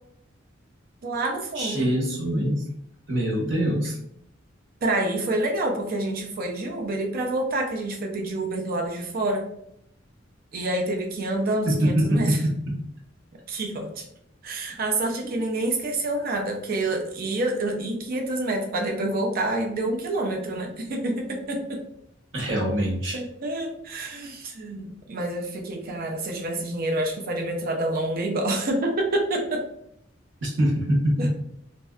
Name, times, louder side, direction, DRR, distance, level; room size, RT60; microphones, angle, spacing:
voice 1, 1.0-1.8 4.8-9.5 10.5-12.4 13.5-14.1 14.4-21.8 23.1-29.6 31.2-31.3, right 2 dB, 50° right, 2 dB, 0.4 m, -27 dB
voice 2, 1.6-2.6 3.1-4.0 11.7-12.8 22.3-23.2 30.4-31.3, equal, 70° right, -3 dB, 0.8 m, -24 dB
2.6 x 2.1 x 2.3 m, 0.74 s
head